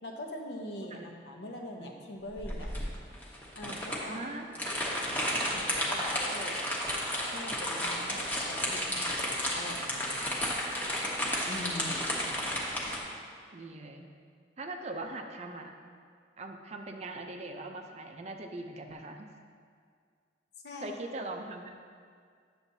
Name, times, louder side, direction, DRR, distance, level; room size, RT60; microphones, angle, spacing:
voice 1, 0.0-2.7 3.5-4.3 5.2-6.6 7.3-10.2 11.5-12.0 20.6-20.9, left 1 dB, 65° left, 1 dB, 0.9 m, -43 dB
sound 1, 2.4-13.0, equal, 10° left, 1.0 m, -32 dB
voice 2, 4.1-4.7 5.4-6.0 7.8-8.2 13.5-14.1 14.6-15.7 16.4-19.3 20.8-21.8, right 2 dB, 35° right, 4 dB, 0.5 m, -41 dB
9.7 x 6.9 x 2.7 m, 2.1 s
head